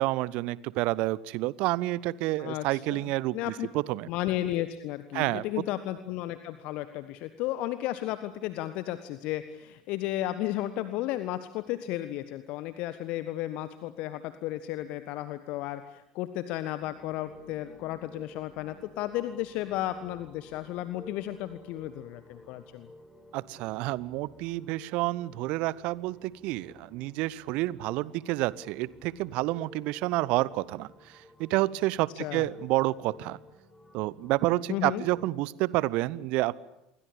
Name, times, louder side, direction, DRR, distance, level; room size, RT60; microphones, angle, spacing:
voice 1, 0.0-4.1 5.1-5.4 23.3-33.4 33.9-36.6, right 18 dB, 55° right, 21 dB, 0.9 m, -29 dB
voice 2, 2.4-3.7 4.1-22.9 32.2-32.4 34.7-35.0, left 14 dB, 55° left, 12 dB, 1.4 m, -34 dB
sound 1, 16.8-35.3, left 2 dB, 5° left, 4.8 m, -53 dB
27.5 x 23.5 x 8.6 m, 0.86 s
figure-of-eight pair, 65°, 2 cm